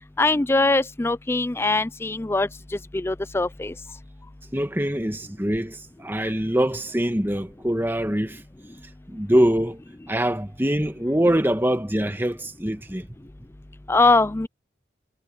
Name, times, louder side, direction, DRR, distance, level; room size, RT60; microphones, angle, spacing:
voice 1, 0.2-2.5 2.9-3.7 13.9-14.5, left 3 dB, 15° left, 0.4 m, -21 dB
voice 2, 4.5-8.4 9.1-9.8 10.1-13.1, right 1 dB, 10° right, 1.5 m, -23 dB
head